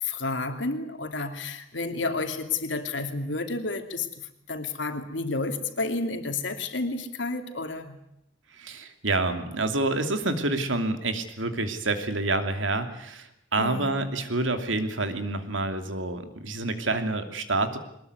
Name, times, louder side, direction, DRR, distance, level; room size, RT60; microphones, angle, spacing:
voice 1, 0.0-8.0 13.6-14.0, left 3 dB, 70° left, 7 dB, 2.8 m, -31 dB
voice 2, 8.5-17.8, right 2 dB, 80° right, 8 dB, 2.8 m, -28 dB
22.5 x 20.5 x 9.6 m, 0.78 s
head